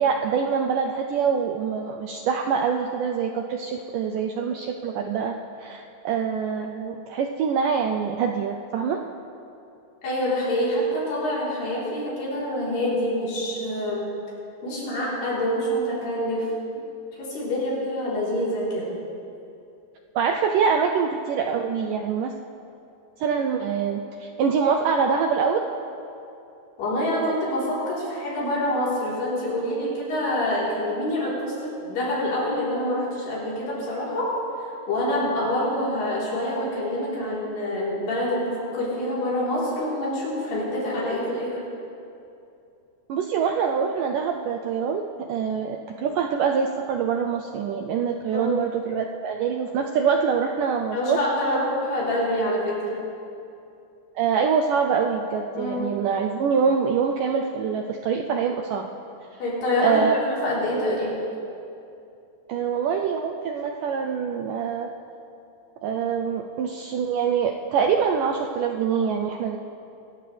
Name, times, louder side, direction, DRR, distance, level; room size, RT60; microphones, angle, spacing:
voice 1, 0.0-9.0 20.2-22.3 23.2-25.6 43.1-45.0 45.3-51.2 54.2-58.9 59.8-60.2 62.5-64.9 65.8-69.6, right 6 dB, 80° right, 3 dB, 1.9 m, -25 dB
voice 2, 10.0-14.1 14.6-16.5 17.2-18.9 26.8-34.4 34.9-41.6 48.3-48.6 50.9-53.0 55.6-55.9 59.4-61.1, left 1 dB, 90° left, -7 dB, 6.1 m, -26 dB
26.0 x 13.0 x 3.4 m, 2.7 s
omnidirectional pair, 4.5 m